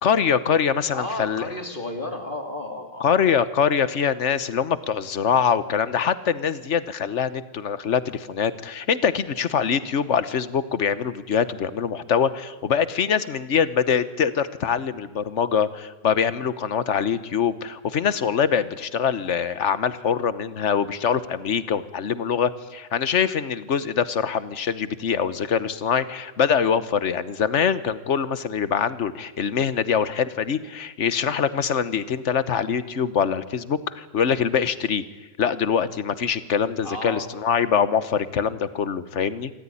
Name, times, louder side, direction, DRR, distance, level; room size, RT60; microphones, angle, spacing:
voice 1, 0.0-1.5 3.0-35.0 35.4-39.5, left 7 dB, 60° left, 14 dB, 1.3 m, -24 dB
voice 2, 0.9-3.1 36.8-37.3, left 1 dB, 35° left, 4 dB, 2.9 m, -32 dB
26.5 x 14.5 x 9.9 m, 1.2 s
omnidirectional pair, 1.4 m